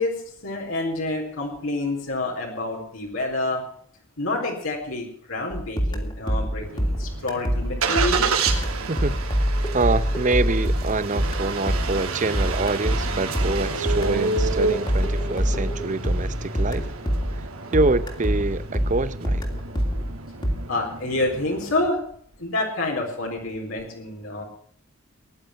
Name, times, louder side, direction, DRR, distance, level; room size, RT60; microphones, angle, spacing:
voice 1, 0.0-3.6 4.2-8.3 20.7-22.0 22.4-24.4, left 2 dB, 70° left, 4.2 m, -28 dB
sound 1, 5.5-17.5 17.7-20.5, equal, 20° left, 2.9 m, -25 dB
Engine starting, 6.6-21.9, right 4 dB, 85° right, 2.9 m, -30 dB
voice 2, 8.9-9.2 9.7-16.9 17.7-19.5, right 3 dB, 35° right, 0.8 m, -26 dB
18.5 x 11.0 x 6.0 m
head